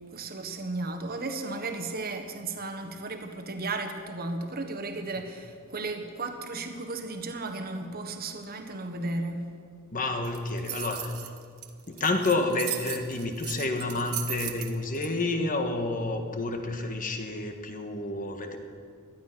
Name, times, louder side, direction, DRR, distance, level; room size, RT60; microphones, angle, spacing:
voice 1, 0.1-9.5, right 2 dB, 45° right, 5 dB, 1.4 m, -34 dB
voice 2, 9.9-11.3 11.9-18.6, left 2 dB, 40° left, 5 dB, 1.5 m, -29 dB
sound 1, 10.2-15.1, right 13 dB, 80° right, 1.2 m, -37 dB
18.0 x 12.5 x 6.0 m, 2.1 s
head